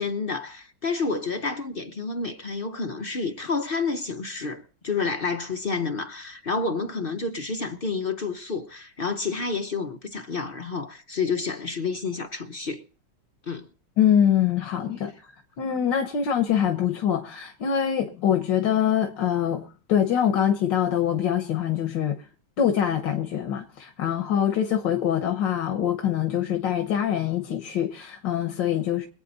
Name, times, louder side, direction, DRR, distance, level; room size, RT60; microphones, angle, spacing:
voice 1, 0.0-12.8 13.5-13.7, left 4 dB, 45° left, 0.8 m, -29 dB
voice 2, 14.0-15.3 15.6-22.2 22.6-29.1, left 9 dB, 85° left, 1.8 m, -24 dB
24.5 x 8.8 x 4.0 m
omnidirectional pair, 1.9 m